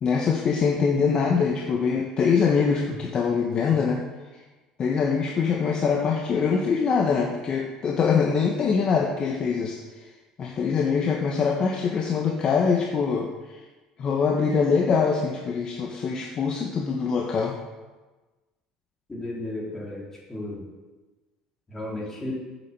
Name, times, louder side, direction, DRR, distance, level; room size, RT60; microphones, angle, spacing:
voice 1, 0.0-4.0 4.3-4.4 4.8-9.8 10.4-13.6 14.0-17.5, left 5 dB, 40° left, 0 dB, 1.3 m, -23 dB
voice 2, 19.1-20.7 21.7-22.3, left 1 dB, 15° left, -4 dB, 3.9 m, -34 dB
8.8 x 7.7 x 7.5 m, 1.2 s
cardioid pair, 125°, 2 cm